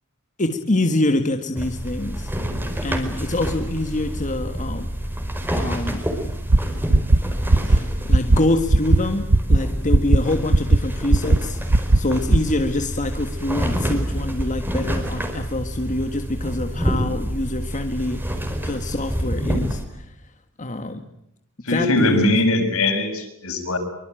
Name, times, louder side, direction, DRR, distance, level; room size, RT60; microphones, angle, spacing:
voice 1, 0.4-2.3 2.8-4.9 5.6-6.1 7.7-11.6 11.9-18.4 18.6-20.3 20.6-21.0 21.7-22.3, left 2 dB, 35° left, 6 dB, 1.7 m, -25 dB
sound 1, 1.5-19.8, equal, 10° right, 4.7 m, -27 dB
sound 2, 6.5-6.6 6.9-7.2 7.5-7.8 8.1-8.4 8.7-9.0 9.3-9.6 9.9-10.2 10.5-10.8 11.1-11.4 11.7-12.0 12.3-12.5, right 2 dB, 80° right, 1.0 m, -14 dB
voice 2, 21.6-23.8, left 2 dB, 70° left, 7 dB, 6.4 m, -20 dB
25.5 x 24.0 x 9.1 m, 0.78 s
head